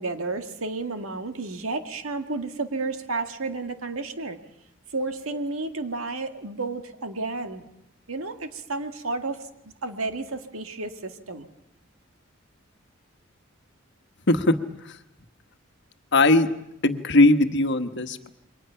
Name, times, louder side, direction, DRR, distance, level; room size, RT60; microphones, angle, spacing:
voice 1, 0.0-4.4 4.9-7.6 8.1-9.4 9.8-11.5, right 3 dB, 85° right, 6 dB, 1.9 m, -31 dB
voice 2, 16.1-16.5 16.8-18.3, left 2 dB, 55° left, 8 dB, 1.3 m, -19 dB
28.5 x 23.5 x 5.8 m, 0.82 s
head